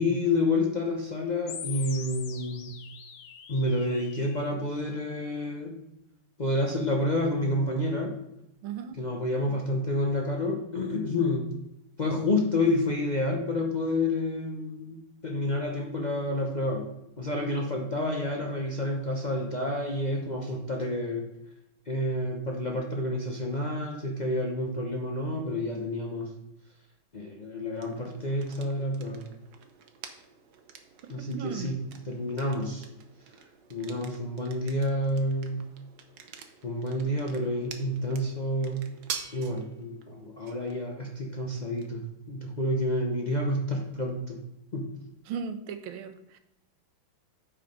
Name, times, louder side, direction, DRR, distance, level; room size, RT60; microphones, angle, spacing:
voice 1, 0.0-2.7 3.5-5.8 6.4-8.2 9.0-11.5 12.0-16.9 17.2-21.3 21.9-26.3 27.1-29.2 31.1-31.8 32.1-32.9 33.7-35.7 36.6-38.9 39.3-44.4 44.7-44.9, left 1 dB, 60° left, 0 dB, 0.4 m, -29 dB
sound 1, 1.5-4.5, left 8 dB, 80° left, 1.8 m, -43 dB
voice 2, 8.6-9.0 31.2-31.8 45.3-46.4, right 7 dB, 75° right, 10 dB, 1.5 m, -37 dB
sound 2, 27.7-45.5, right 7 dB, 60° right, 1.2 m, -48 dB
8.7 x 5.0 x 5.2 m, 0.84 s
omnidirectional pair, 2.3 m